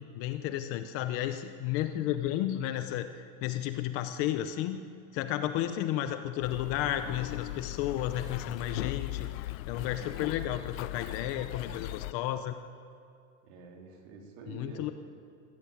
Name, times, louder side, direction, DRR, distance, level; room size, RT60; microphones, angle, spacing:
voice 1, 0.0-4.8 5.1-12.5 14.5-14.9, left 12 dB, 30° left, 9 dB, 0.8 m, -33 dB
sound 1, 6.4-12.1, left 18 dB, 70° left, 0.5 m, -38 dB
voice 2, 10.0-10.3 13.4-14.9, right 3 dB, 45° right, 1 dB, 3.7 m, -48 dB
21.0 x 14.5 x 8.7 m, 2.3 s
supercardioid pair, 160°, 43 cm